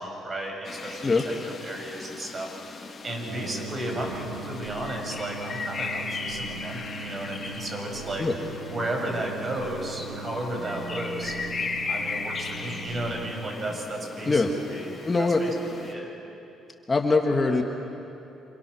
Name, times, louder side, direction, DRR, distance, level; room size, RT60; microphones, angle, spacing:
voice 1, 0.0-1.3 1.6-8.3 8.7-11.4 11.9-16.1, right 1 dB, 35° right, 2 dB, 6.2 m, -34 dB
sound 1, 0.6-15.9, left 4 dB, 40° left, 2.9 m, -37 dB
sound 2, 3.3-13.3, right 4 dB, 85° right, 2.3 m, -40 dB
voice 2, 15.0-15.4 16.9-17.6, left 3 dB, 25° left, 2 dB, 2.1 m, -22 dB
28.0 x 26.5 x 6.4 m, 2.9 s
cardioid pair, 90°, 0 cm